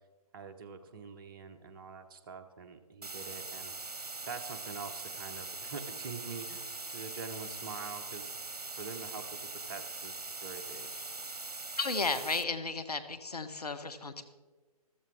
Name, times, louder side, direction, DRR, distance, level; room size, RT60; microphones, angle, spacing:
voice 1, 0.3-3.7 4.2-8.4 8.8-10.9, right 5 dB, 35° right, 6 dB, 1.1 m, -45 dB
sound 1, 3.0-12.4, right 3 dB, 75° right, 0.9 m, -42 dB
sound 2, 6.2-8.8 9.1-9.3 10.2-12.3, left 6 dB, 20° left, 1.7 m, -57 dB
voice 2, 11.8-14.3, left 3 dB, 80° left, 8 dB, 1.3 m, -34 dB
14.0 x 13.5 x 3.6 m, 1.3 s
figure-of-eight pair, 140°, 20 cm